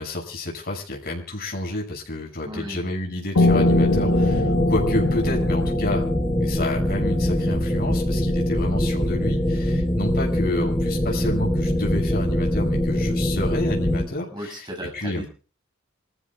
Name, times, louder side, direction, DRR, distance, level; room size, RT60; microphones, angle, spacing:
voice 1, 0.0-6.0 6.4-14.7 14.9-15.3, left 1 dB, 45° left, 0 dB, 6.7 m, -29 dB
voice 2, 2.5-2.8 14.3-15.3, equal, 20° right, 1 dB, 7.6 m, -35 dB
Piano, 3.4-8.6, left 2 dB, 80° left, 1.4 m, -24 dB
sound 1, 3.5-14.0, equal, 10° left, 4.4 m, -23 dB
27.5 x 15.0 x 2.4 m, 0.38 s
head